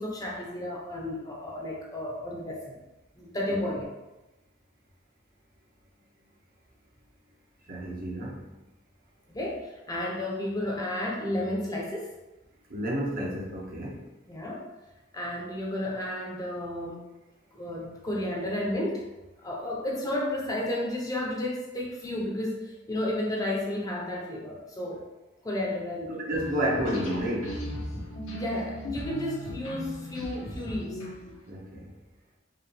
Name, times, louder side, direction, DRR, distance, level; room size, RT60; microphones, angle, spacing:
voice 1, 0.0-2.8 3.1-3.9 9.3-12.1 14.3-14.7 15.1-17.0 17.5-19.1 19.4-25.0 25.4-26.2 28.3-31.0, left 1 dB, 20° left, -3 dB, 0.7 m, -32 dB
voice 2, 7.7-8.4 12.7-14.0 26.1-27.6 31.5-31.9, equal, 45° right, -3 dB, 0.9 m, -31 dB
sound 1, 26.3-31.5, equal, 80° left, 1.0 m, -37 dB
4.8 x 2.4 x 3.2 m, 1.0 s
head